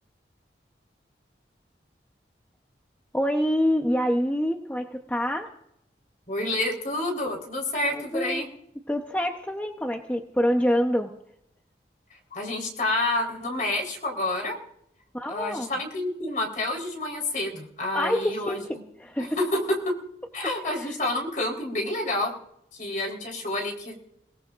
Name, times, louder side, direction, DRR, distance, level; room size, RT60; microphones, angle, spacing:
voice 1, 3.1-5.5 7.9-8.4 8.9-11.1 15.1-15.7 17.9-18.6 19.0-19.4 20.8-20.9, equal, 10° left, 3 dB, 0.9 m, -26 dB
voice 2, 6.3-8.5 12.3-14.5 15.3-18.6 19.2-19.6 20.3-22.3 22.7-24.0, left 2 dB, 45° left, 1 dB, 4.2 m, -29 dB
29.5 x 18.5 x 2.6 m, 0.75 s
head